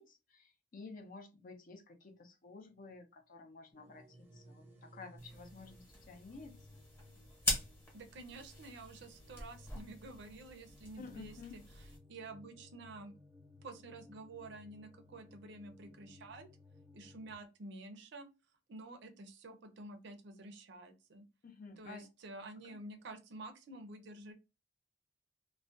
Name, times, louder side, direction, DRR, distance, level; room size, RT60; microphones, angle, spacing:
voice 1, 0.0-6.7 11.0-11.6 21.4-22.1 22.6-22.8, left 4 dB, 45° left, 4 dB, 0.5 m, -52 dB
sound 1, 3.7-17.4, left 1 dB, 10° right, 0.6 m, -59 dB
sound 2, 5.2-12.0, left 1 dB, 15° left, 0.9 m, -43 dB
voice 2, 7.9-11.6 12.1-13.1 13.6-16.5 16.9-18.3 18.7-21.3 21.8-24.3, right 2 dB, 65° right, 8 dB, 0.5 m, -50 dB
2.3 x 2.1 x 2.5 m, 0.28 s
head